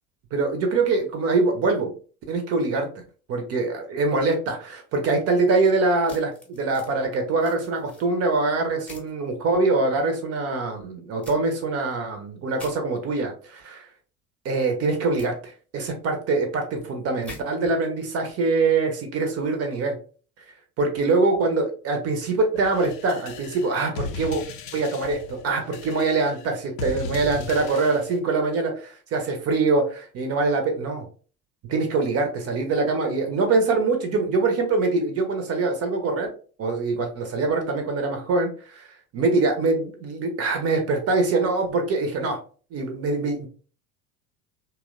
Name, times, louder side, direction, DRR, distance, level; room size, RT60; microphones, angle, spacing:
voice 1, 0.3-1.9 2.3-2.9 3.3-13.9 14.4-20.0 20.8-24.4 24.7-31.1 31.7-36.3 36.6-38.9 39.1-42.4 42.7-43.5, right 3 dB, 35° right, 4 dB, 0.6 m, -24 dB
sound 1, 6.1-6.9 7.4-8.0 8.9-9.1 11.2-11.4 12.5-12.7 15.2-15.3 17.2-17.4, left 1 dB, 5° left, 0.7 m, -43 dB
sound 2, 22.6-28.2, left 4 dB, 65° left, 0.5 m, -36 dB
2.7 x 2.0 x 2.4 m, 0.39 s
figure-of-eight pair, 70°, 44 cm